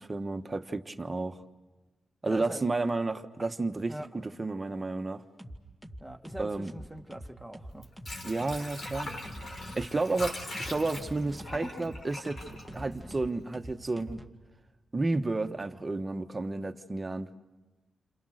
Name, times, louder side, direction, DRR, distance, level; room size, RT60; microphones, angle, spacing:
voice 1, 0.0-1.4 2.2-5.2 6.4-6.7 8.2-9.1 9.7-12.4 12.7-14.2 14.9-17.3, right 3 dB, 30° right, 1.2 m, -31 dB
voice 2, 2.2-2.7 3.4-3.5 3.9-4.1 6.0-7.9, right 1 dB, 5° right, 1.8 m, -43 dB
sound 1, 4.7-5.0 5.4-14.3, equal, 15° left, 2.2 m, -45 dB
Water / Sink (filling or washing), 7.6-13.5 13.9-14.0, left 1 dB, 55° left, 4.3 m, -41 dB
29.0 x 27.5 x 6.6 m
cardioid pair, 75°, 0 cm